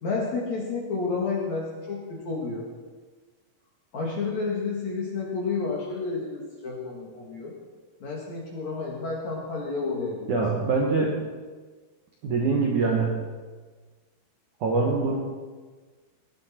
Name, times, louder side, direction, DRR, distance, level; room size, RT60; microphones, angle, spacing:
voice 1, 0.0-2.7 3.9-7.5 8.0-10.3, left 4 dB, 50° left, -3 dB, 2.5 m, -30 dB
voice 2, 10.3-11.1 12.2-13.1 14.6-15.2, right 4 dB, 65° right, -1 dB, 1.9 m, -23 dB
18.5 x 11.5 x 4.5 m, 1.4 s
omnidirectional pair, 5.7 m